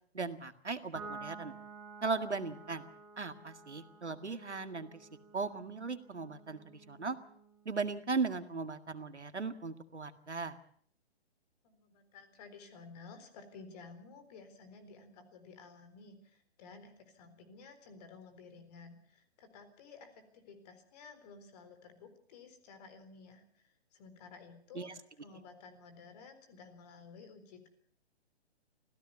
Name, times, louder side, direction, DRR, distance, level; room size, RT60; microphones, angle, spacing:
voice 1, 0.1-1.5 2.0-2.8 3.2-5.1 5.3-7.2 7.7-10.6 24.7-24.9, right 4 dB, 85° right, 10 dB, 1.9 m, -37 dB
Piano, 0.9-7.6, right 4 dB, ahead, 4.6 m, -51 dB
voice 2, 11.6-24.9 25.2-27.7, left 4 dB, 35° left, 10 dB, 4.0 m, -54 dB
26.0 x 16.5 x 6.9 m, 0.62 s
figure-of-eight pair, 130°, 33 cm